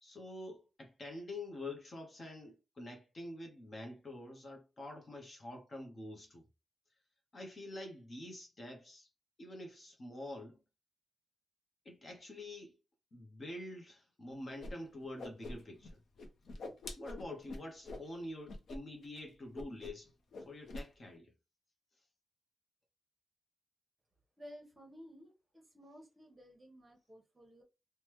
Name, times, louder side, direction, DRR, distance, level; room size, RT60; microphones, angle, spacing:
voice 1, 0.0-6.4 7.3-9.1 9.4-10.6 11.8-12.7 13.1-16.0 17.0-20.1 20.4-21.3, left 1 dB, 35° left, 0.6 m, -47 dB
Whoosh swoosh swish, 14.6-14.7 15.0-15.9 16.2-18.1 18.5-18.8 19.0-19.2 19.5-20.1 20.3-20.9, left 2 dB, 90° left, 0.6 m, -45 dB
voice 2, 24.4-27.6, equal, 20° right, 0.9 m, -55 dB
3.1 x 2.1 x 3.0 m
wide cardioid pair, 170°, 0 cm